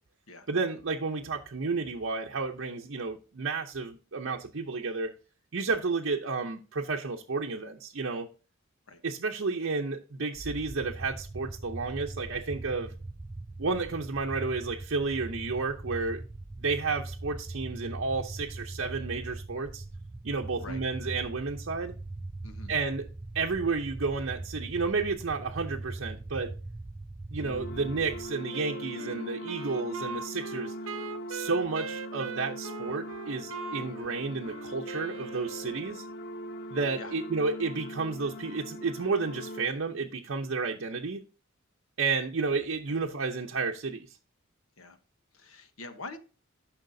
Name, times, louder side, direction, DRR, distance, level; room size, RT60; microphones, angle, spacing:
voice 1, 0.5-5.1 5.5-8.3 9.0-12.9 13.6-16.2 16.6-19.8 20.2-21.9 22.7-23.0 23.3-26.5 27.3-30.7 31.3-36.0 36.7-41.2 42.0-44.1, right 4 dB, 60° right, 0.7 m, -31 dB
sound 1, 10.3-28.3, right 2 dB, 20° right, 0.4 m, -41 dB
sound 2, 27.4-39.7, equal, 50° left, 0.7 m, -41 dB
Wind instrument woodwind instrument, 28.5-36.0, right 5 dB, 90° right, 0.8 m, -41 dB
voice 2, 45.3-46.2, left 3 dB, 75° left, 1.2 m, -44 dB
13.0 x 5.9 x 2.7 m
head